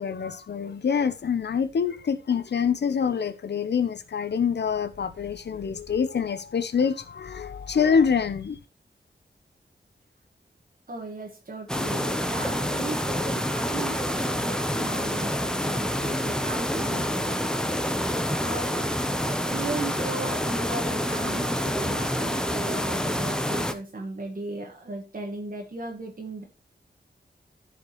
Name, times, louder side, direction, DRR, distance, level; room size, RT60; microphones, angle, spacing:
voice 1, 0.0-8.6, left 6 dB, 75° left, 0.8 m, -26 dB
voice 2, 10.9-18.1 18.4-18.7 19.3-26.4, right 2 dB, 50° right, 1.8 m, -37 dB
sound 1, 11.7-23.7, equal, 5° left, 0.9 m, -27 dB
14.5 x 5.2 x 3.2 m
wide cardioid pair, 105°, 18 cm